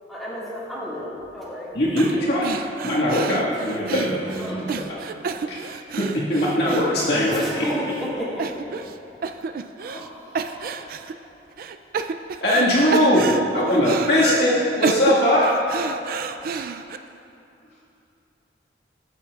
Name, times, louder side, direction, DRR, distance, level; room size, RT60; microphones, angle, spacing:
voice 1, 0.1-1.7 2.0-2.3 4.4-4.7 7.1-8.1, equal, ahead, -9 dB, 1.8 m, -33 dB
voice 2, 1.7-2.5 2.8-4.9 5.5-5.6 6.0-7.7 12.4-15.5, left 1 dB, 65° left, -6 dB, 1.8 m, -20 dB
sound 1, 2.0-2.2 2.4-7.6 7.9-8.0 8.4-9.0 9.2-10.1 10.3-11.1 11.6-12.7 12.9-14.4 14.8-17.0, right 5 dB, 55° right, 0.3 m, -29 dB
voice 3, 9.8-10.8, equal, 35° left, -8 dB, 1.2 m, -43 dB
15.5 x 7.1 x 2.4 m, 2.7 s
head